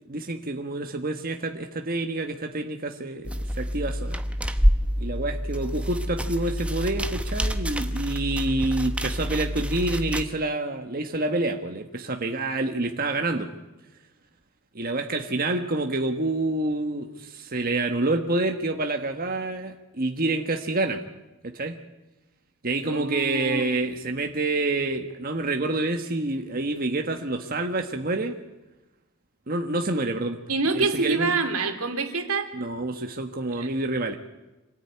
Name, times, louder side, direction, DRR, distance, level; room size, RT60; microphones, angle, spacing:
voice 1, 0.1-4.2 5.0-13.5 14.7-21.0 21.4-21.8 22.6-28.4 29.5-30.4 30.7-31.3 32.5-34.2, right 2 dB, 40° right, 4 dB, 1.4 m, -28 dB
sound 1, 3.2-10.2, equal, 5° right, 1.1 m, -27 dB
voice 2, 22.8-23.7 30.5-32.5 33.5-33.7, right 3 dB, 85° right, 6 dB, 3.0 m, -26 dB
26.0 x 18.5 x 9.7 m, 1.1 s
head